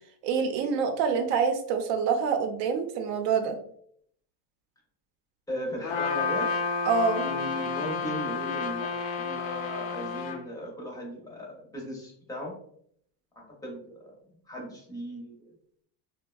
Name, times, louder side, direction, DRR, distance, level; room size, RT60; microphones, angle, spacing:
voice 1, 0.2-3.6 6.9-7.3, right 5 dB, 85° right, 6 dB, 0.7 m, -26 dB
voice 2, 5.5-6.5 7.2-12.5 13.4-14.1 14.5-15.5, equal, 10° left, -2 dB, 0.4 m, -37 dB
Trumpet, 5.8-10.4, left 5 dB, 90° left, 0.7 m, -31 dB
3.4 x 2.1 x 2.2 m, 0.65 s
cardioid pair, 150°, 47 cm